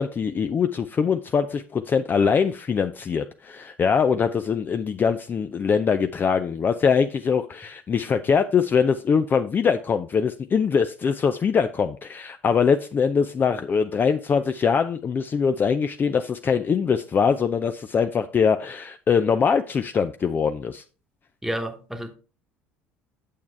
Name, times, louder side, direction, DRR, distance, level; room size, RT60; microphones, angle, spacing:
voice 1, 0.0-20.8, left 6 dB, 30° left, 0.5 m, -22 dB
voice 2, 21.4-22.1, right 1 dB, 5° right, 1.2 m, -30 dB
8.4 x 7.1 x 3.3 m
figure-of-eight pair, 60°, 6 cm